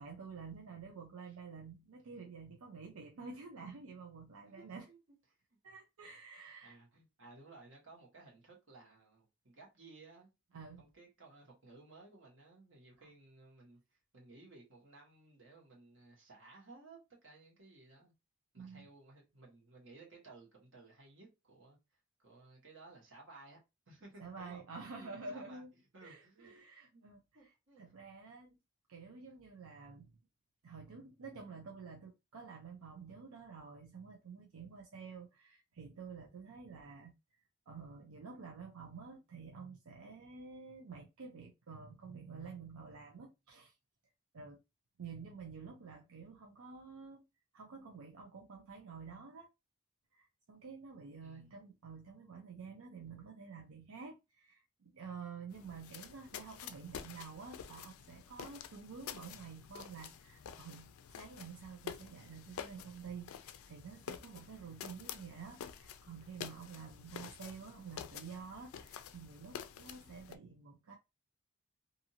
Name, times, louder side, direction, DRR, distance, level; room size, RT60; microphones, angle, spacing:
voice 1, 0.0-4.9 5.6-6.7 10.5-10.8 18.6-18.9 24.2-25.7 26.0-27.2 27.8-28.6 28.9-30.1 30.6-37.1 37.7-43.7 44.3-44.6 45.0-47.2 47.5-49.5 50.1-71.0, right 5 dB, 85° right, 0.5 m, -50 dB
voice 2, 4.5-5.2 6.6-10.3 10.8-18.1 18.5-21.8 22.2-23.6 23.9-25.6 25.9-27.0 27.3-27.8 51.2-51.6 67.1-67.3, right 3 dB, 60° right, 1.3 m, -58 dB
sound 1, 55.5-70.4, left 8 dB, 85° left, 0.3 m, -49 dB
2.6 x 2.6 x 2.7 m
head